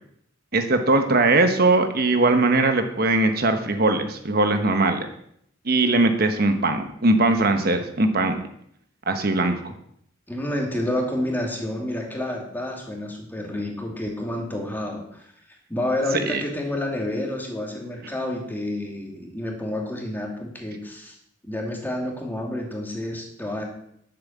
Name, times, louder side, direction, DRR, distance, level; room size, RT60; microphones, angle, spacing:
voice 1, 0.5-5.1 5.7-8.4 9.1-9.7 16.3-16.4, right 2 dB, 55° right, 6 dB, 1.1 m, -20 dB
voice 2, 10.3-15.0 15.7-21.2 21.5-23.6, left 1 dB, 10° left, 0 dB, 2.5 m, -29 dB
10.5 x 7.8 x 7.4 m, 0.70 s
head